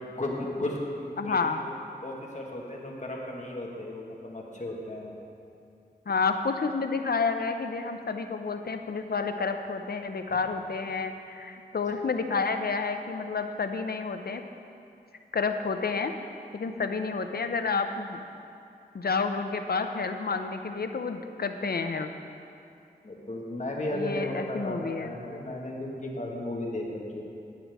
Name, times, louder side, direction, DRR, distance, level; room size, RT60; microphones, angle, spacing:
voice 1, 0.0-1.7 2.0-5.2 23.0-27.2, left 1 dB, 45° left, -2 dB, 1.6 m, -35 dB
voice 2, 1.2-1.6 6.1-14.4 15.3-16.1 16.5-18.2 18.9-22.1 23.9-25.1, left 4 dB, 60° left, 7 dB, 0.6 m, -30 dB
11.0 x 8.9 x 3.5 m, 2.6 s
wide cardioid pair, 65°, 18 cm